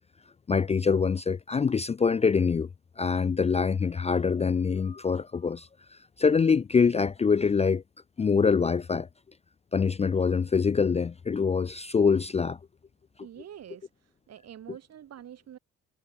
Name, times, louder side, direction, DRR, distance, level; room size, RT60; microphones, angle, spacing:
voice 1, 0.5-2.7 3.0-5.7 6.2-7.8 8.2-9.1 9.7-12.6, left 5 dB, 20° left, 0.4 m, -24 dB
voice 2, 13.2-13.9 14.3-15.6, right 10 dB, 55° right, 1.5 m, -45 dB
cardioid pair, 90°, 30 cm